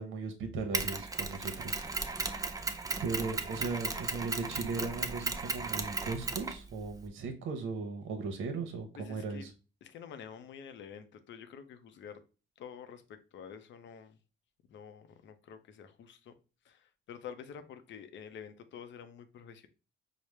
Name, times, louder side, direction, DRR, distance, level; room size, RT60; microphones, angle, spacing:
voice 1, 0.0-1.9 3.0-9.5, right 4 dB, 80° right, 0.8 m, -37 dB
Mechanisms, 0.7-7.1, right 3 dB, 15° right, 0.4 m, -36 dB
voice 2, 8.9-9.5 9.8-12.2 12.6-14.2 14.7-16.4 16.6-19.7, left 7 dB, 70° left, 0.6 m, -48 dB
4.8 x 2.0 x 3.1 m
cardioid pair, 90°, 20 cm